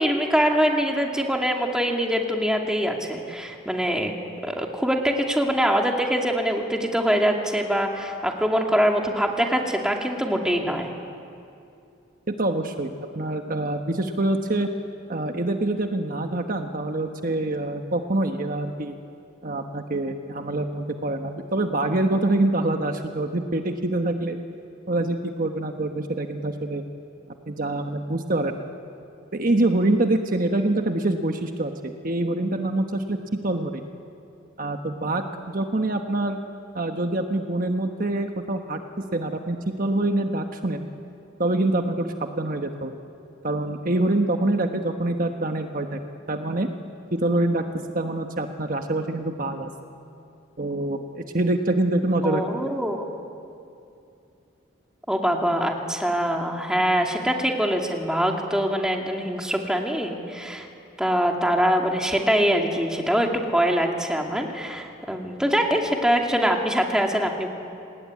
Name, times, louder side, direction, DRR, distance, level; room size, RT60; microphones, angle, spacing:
voice 1, 0.0-4.1 4.4-10.9 52.2-53.0 55.1-60.7 61.0-67.5, equal, 5° right, 1 dB, 2.3 m, -23 dB
voice 2, 12.3-14.7 15.1-18.9 19.4-24.4 24.9-26.8 27.5-28.6 29.3-33.2 33.4-33.8 34.6-36.4 36.7-38.8 39.1-40.9 41.4-42.9 43.4-46.0 46.3-46.7 47.1-47.6 47.9-49.7 50.6-52.7, right 2 dB, 45° right, 5 dB, 1.3 m, -25 dB
29.0 x 19.5 x 9.6 m, 2.6 s
head